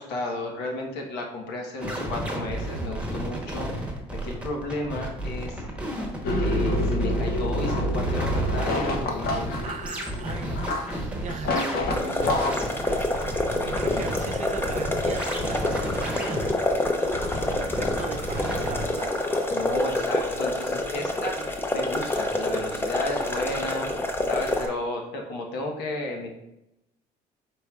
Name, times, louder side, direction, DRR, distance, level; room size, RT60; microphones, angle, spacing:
voice 1, 0.0-5.6 6.4-9.5 11.9-12.4 13.9-14.0 19.5-21.3 21.7-23.9 24.3-26.4, left 1 dB, 80° left, 1 dB, 1.1 m, -33 dB
sound 1, 1.8-18.9, equal, 5° right, 1.0 m, -32 dB
sound 2, 6.2-12.5, left 1 dB, 65° left, 0.7 m, -27 dB
voice 2, 9.3-19.1 21.0-21.5 23.6-24.0, right 5 dB, 45° right, 7 dB, 0.5 m, -40 dB
sound 3, 11.9-24.7, left 2 dB, 15° left, 0.6 m, -27 dB
5.0 x 4.4 x 2.3 m, 0.87 s
cardioid pair, 110°, 17 cm